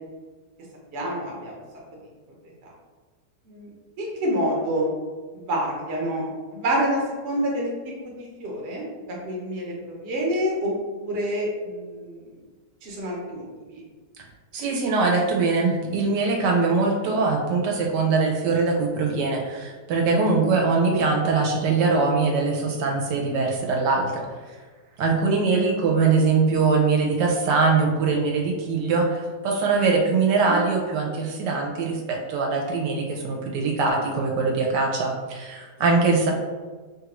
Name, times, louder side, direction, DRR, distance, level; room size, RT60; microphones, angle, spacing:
voice 1, 0.9-1.5 2.6-2.7 3.5-3.7 4.0-4.9 5.3-7.7 8.0-8.1 8.4-12.2 12.8-13.4 13.7-13.8 20.1-20.5 30.4-30.6 35.9-36.0, equal, 50° right, -2 dB, 0.8 m, -28 dB
voice 2, 14.5-24.4 25.0-36.3, right 4 dB, 80° right, 0 dB, 1.2 m, -22 dB
3.1 x 2.4 x 2.9 m, 1.4 s
omnidirectional pair, 1.8 m